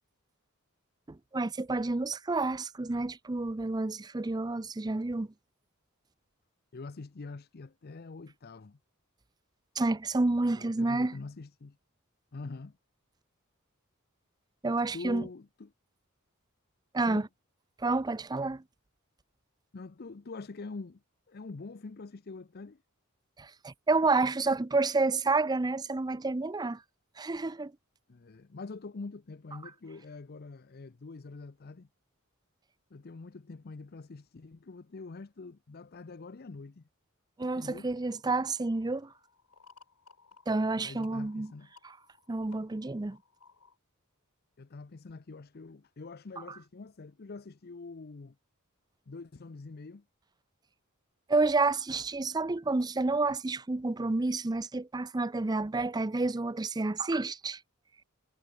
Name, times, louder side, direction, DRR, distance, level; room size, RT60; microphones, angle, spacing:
voice 1, 1.1-5.3 9.8-11.2 14.6-15.3 16.9-17.3 17.8-18.6 23.4-26.8 27.2-27.7 37.4-39.1 40.5-41.5 41.8-41.9 42.3-43.2 46.5-46.6 51.3-57.6, right 3 dB, 20° right, 0.5 m, -29 dB
voice 2, 6.7-8.8 10.5-11.8 12.3-12.8 14.9-15.7 17.0-17.3 19.7-21.0 21.3-22.8 28.1-31.9 32.9-36.9 37.6-37.9 40.8-41.7 44.6-48.4 49.1-50.0, left 3 dB, 45° left, 0.6 m, -45 dB
sound 1, 38.1-43.8, left 5 dB, 85° left, 3.4 m, -61 dB
head